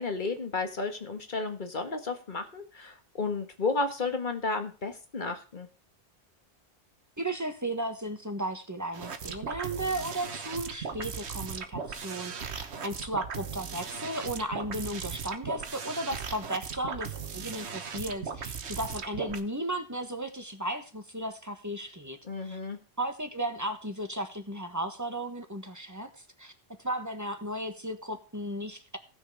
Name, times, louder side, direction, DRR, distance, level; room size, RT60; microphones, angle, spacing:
voice 1, 0.0-5.7 22.2-22.8, left 3 dB, 45° left, 6 dB, 1.7 m, -32 dB
voice 2, 7.2-22.2 22.4-22.6 23.0-26.5 26.8-29.0, right 1 dB, 15° right, 7 dB, 1.3 m, -35 dB
sound 1, 8.9-19.4, right 6 dB, 75° right, 1.3 m, -38 dB
17.0 x 6.4 x 4.8 m, 0.35 s
omnidirectional pair, 1.1 m